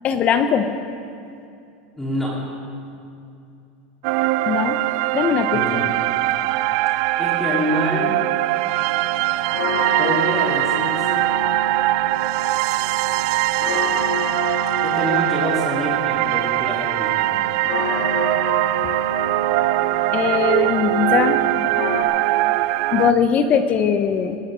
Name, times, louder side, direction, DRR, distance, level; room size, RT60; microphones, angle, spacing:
voice 1, 0.0-0.7 4.5-4.8 5.1-5.6 20.1-21.4 22.9-24.4, left 7 dB, 30° left, 8 dB, 0.7 m, -20 dB
voice 2, 2.0-2.4 5.5-5.9 7.2-8.2 10.0-11.3 14.8-17.4, equal, 5° left, -5 dB, 2.3 m, -26 dB
sound 1, 4.0-23.1, right 17 dB, 50° right, 0.3 m, -21 dB
sound 2, 8.8-22.0, left 3 dB, 80° left, 2.9 m, -31 dB
20.0 x 9.6 x 6.1 m, 2.6 s
supercardioid pair, 160°, 5 cm